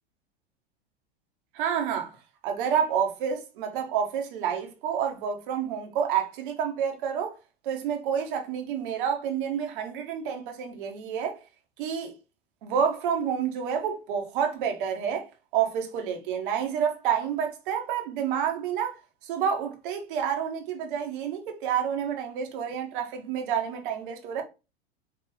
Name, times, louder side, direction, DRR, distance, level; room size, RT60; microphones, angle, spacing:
voice 1, 1.5-2.1 2.4-7.3 7.6-11.4 11.8-12.1 12.6-15.3 15.5-24.4, right 8 dB, 50° right, 1.3 m, -29 dB
4.8 x 2.9 x 3.1 m
figure-of-eight pair, 95°, 32 cm